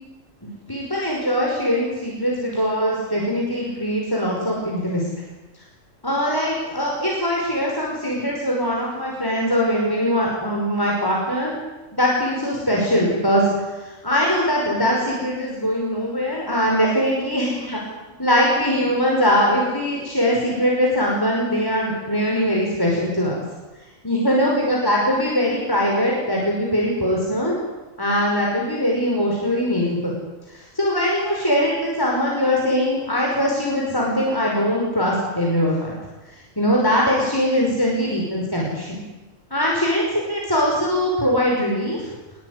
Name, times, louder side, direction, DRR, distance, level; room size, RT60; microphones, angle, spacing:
voice 1, 0.7-5.0 6.0-11.6 11.9-13.4 13.8-17.8 18.2-23.3 24.0-27.5 28.0-30.1 30.5-35.9 36.6-39.0 39.5-42.1, equal, 15° left, -2 dB, 5.7 m, -21 dB
26.0 x 21.0 x 9.8 m, 1.1 s
omnidirectional pair, 1.4 m